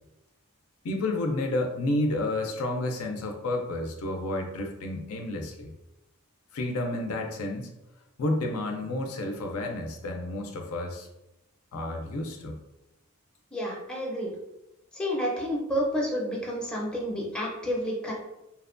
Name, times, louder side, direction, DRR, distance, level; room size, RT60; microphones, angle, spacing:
voice 1, 0.8-5.7 6.5-7.7 8.2-11.1 11.7-12.6, left 1 dB, 70° left, 3 dB, 0.4 m, -30 dB
voice 2, 13.5-14.3 15.0-18.1, equal, 5° left, -3 dB, 0.5 m, -30 dB
2.8 x 2.1 x 2.4 m, 0.90 s
head